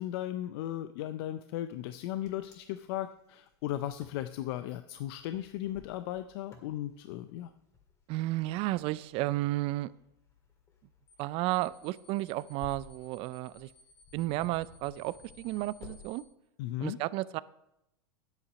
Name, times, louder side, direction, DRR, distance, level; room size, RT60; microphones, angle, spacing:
voice 1, 0.0-7.5 16.6-17.0, left 13 dB, 60° left, 11 dB, 0.5 m, -36 dB
Wind, 1.8-16.0, left 4 dB, 20° left, 2.0 m, -57 dB
voice 2, 8.1-9.9 11.2-13.7 14.1-16.2 16.8-17.4, right 17 dB, 45° right, 19 dB, 0.4 m, -32 dB
sound 1, 11.1-11.2 11.5-16.2, left 3 dB, 40° left, 2.7 m, -60 dB
9.9 x 8.3 x 5.2 m, 0.84 s
supercardioid pair, 125°, 14 cm